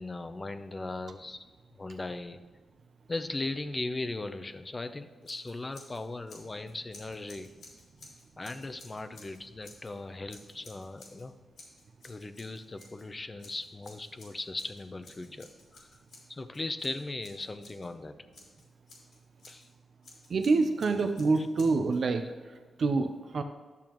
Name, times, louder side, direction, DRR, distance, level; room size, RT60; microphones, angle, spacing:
voice 1, 0.0-1.4 1.8-2.4 3.1-7.5 8.4-11.3 12.0-16.0 16.3-18.2 19.5-19.7 21.4-21.5, left 2 dB, 30° left, 10 dB, 0.6 m, -38 dB
Scissors, 5.2-6.0 6.3-9.9 10.3-11.3 11.6-13.1 13.4-17.9 18.3-19.7 20.0-22.0, left 2 dB, 80° left, 2.6 m, -54 dB
voice 2, 20.3-22.2 22.8-23.4, right 3 dB, 60° right, 6 dB, 0.6 m, -26 dB
11.0 x 7.0 x 3.0 m, 1.4 s
cardioid pair, 80°, 0 cm